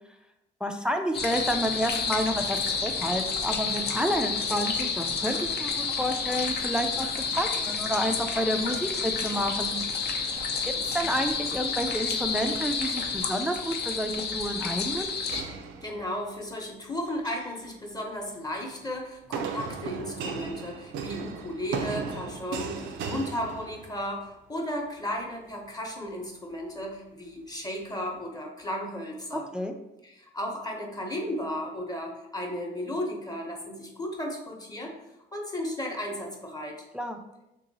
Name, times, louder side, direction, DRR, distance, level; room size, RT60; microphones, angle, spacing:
voice 1, 0.6-7.1 7.4-9.8 10.9-15.1 29.5-29.7 36.9-37.2, equal, 5° right, 5 dB, 0.3 m, -29 dB
sound 1, 1.1-15.4, left 5 dB, 55° left, 0.5 m, -30 dB
sound 2, 15.3-16.4 17.1-17.6 19.3-24.2, right 5 dB, 80° right, 0.4 m, -36 dB
voice 2, 15.8-29.5 30.0-34.9 35.3-36.8, left 1 dB, 20° left, 1 dB, 0.8 m, -34 dB
2.9 x 2.8 x 4.0 m, 0.90 s
cardioid pair, 90°, 20 cm